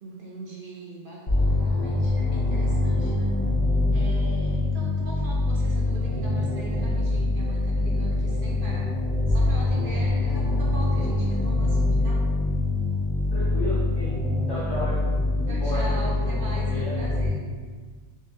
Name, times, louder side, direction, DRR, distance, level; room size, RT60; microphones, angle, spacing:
voice 1, 0.0-3.4 3.9-8.9 9.3-12.2 15.5-17.4, right 1 dB, 55° right, -4 dB, 0.7 m, -40 dB
sound 1, 1.3-17.3, left 2 dB, 45° left, 0.4 m, -24 dB
voice 2, 13.3-14.2 14.5-16.1 16.5-17.0, left 1 dB, 60° left, -9 dB, 1.5 m, -33 dB
3.8 x 2.8 x 3.3 m, 1.5 s
omnidirectional pair, 1.3 m